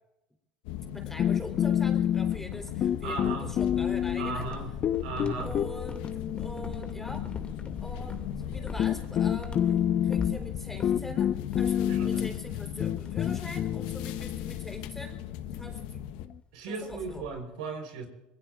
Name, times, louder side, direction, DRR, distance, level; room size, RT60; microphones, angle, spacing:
sound 1, 0.6-16.3, left 11 dB, 75° left, 1.2 m, -38 dB
voice 1, 0.9-4.5 5.4-6.1 6.4-7.3 7.8-15.2 15.5-16.0 16.6-17.3, left 1 dB, 5° left, 3 dB, 3.8 m, -43 dB
sound 2, 1.2-2.6 2.8-4.4 4.8-7.3 8.3-8.4 8.8-16.3, left 10 dB, 45° left, 0.5 m, -28 dB
sound 3, 1.8-12.7 13.0-13.5 13.8-14.0 14.4-14.7 15.7-15.8 16.1-16.2 16.5-17.4, left 3 dB, 25° left, 2.4 m, -43 dB
voice 2, 3.0-3.5 4.2-4.7 5.0-5.5 11.9-12.2 16.5-18.1, right 4 dB, 80° right, 4 dB, 4.3 m, -36 dB
26.5 x 21.5 x 2.5 m, 0.96 s
hypercardioid pair, 85°, 4 cm